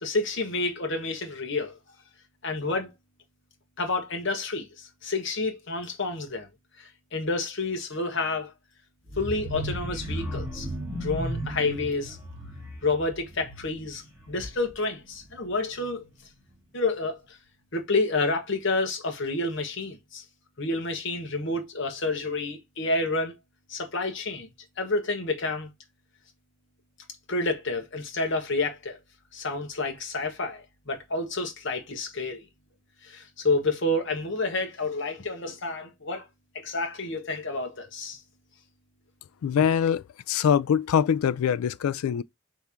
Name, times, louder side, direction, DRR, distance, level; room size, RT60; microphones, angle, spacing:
voice 1, 0.0-1.8 2.4-2.9 3.8-6.5 7.1-8.5 9.2-10.7 11.0-12.2 12.8-16.0 16.7-17.4 17.7-20.2 20.6-23.3 23.7-24.5 24.8-25.7 27.3-29.0 29.3-32.5 33.0-36.3 36.5-38.2, left 2 dB, 55° left, 1.2 m, -29 dB
sound 1, 9.1-14.8 15.2-15.5 15.8-15.9, equal, 10° right, 1.8 m, -35 dB
voice 2, 39.4-42.2, left 8 dB, 80° left, 0.3 m, -23 dB
3.6 x 3.4 x 4.3 m
head